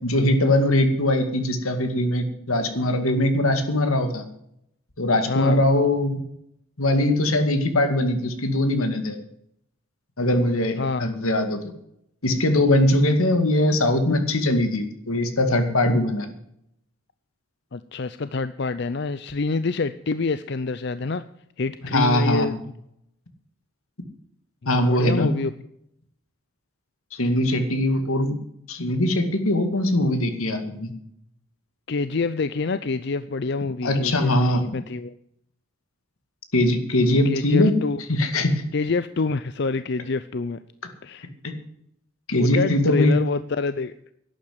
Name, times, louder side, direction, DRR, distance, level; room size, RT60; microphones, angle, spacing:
voice 1, 0.0-4.2 5.0-6.2 6.8-9.2 10.2-11.6 12.2-16.3 21.9-22.5 24.7-25.3 27.1-28.4 28.7-30.9 33.8-34.6 36.5-37.7 38.1-38.6 42.3-43.2, left 1 dB, 85° left, 8 dB, 2.3 m, -21 dB
voice 2, 5.3-5.6 10.8-11.1 17.7-21.2 21.6-22.6 24.6-25.5 31.9-35.1 37.2-38.0 38.7-40.6 41.0-41.3 42.3-44.1, left 3 dB, 50° left, 13 dB, 0.5 m, -27 dB
12.0 x 8.9 x 9.5 m, 0.74 s
head